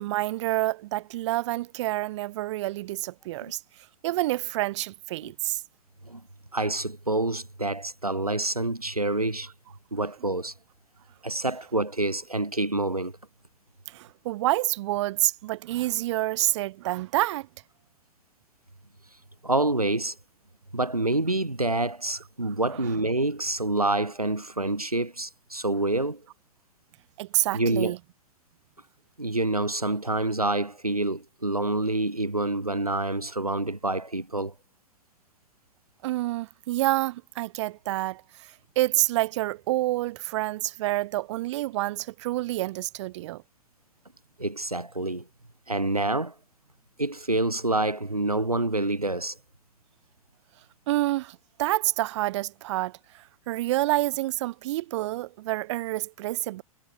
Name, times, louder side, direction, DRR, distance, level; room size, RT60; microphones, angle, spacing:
voice 1, 0.0-3.6 4.0-5.6 13.9-17.5 27.2-28.0 36.0-43.4 50.9-56.6, right 17 dB, 50° right, 6.4 m, -28 dB
voice 2, 6.5-9.5 9.9-10.5 11.2-13.1 19.4-20.2 20.7-26.2 27.5-28.0 29.2-34.5 44.4-45.3 45.7-46.3 47.0-49.4, right 2 dB, 90° right, 3.4 m, -27 dB
figure-of-eight pair, 95°, 18 cm